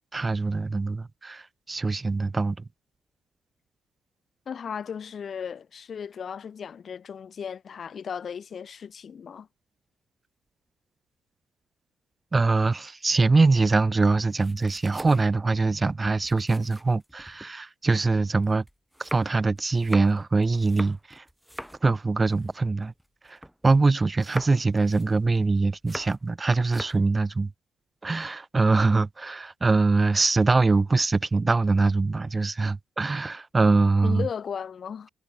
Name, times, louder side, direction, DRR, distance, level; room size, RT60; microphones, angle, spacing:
voice 1, 0.1-2.6 12.3-18.6 19.0-21.2 21.8-22.9 23.3-23.4 23.6-27.5 28.0-34.3, right 3 dB, 25° right, 0.4 m, -23 dB
voice 2, 4.4-9.5 34.0-35.1, left 7 dB, 50° left, 1.8 m, -36 dB
sound 1, 13.4-17.5 17.9-23.7 24.0-26.3 26.6-27.1, equal, ahead, 1.7 m, -43 dB
cardioid pair, 90°, 0 cm